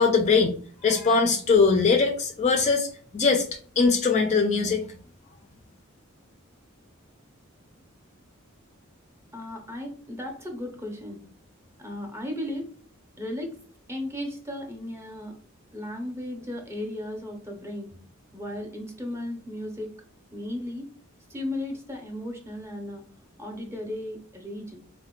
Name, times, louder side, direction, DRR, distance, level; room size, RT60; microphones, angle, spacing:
voice 1, 0.0-2.9 3.1-3.4 3.8-4.8, left 4 dB, 35° left, 3 dB, 0.3 m, -21 dB
voice 2, 9.3-11.2 11.8-12.7 13.2-13.5 13.9-15.3 15.7-18.0 18.3-19.9 20.3-20.9 21.3-23.0 23.4-24.8, left 1 dB, 15° right, 1 dB, 0.6 m, -35 dB
3.8 x 2.1 x 2.3 m, 0.43 s
head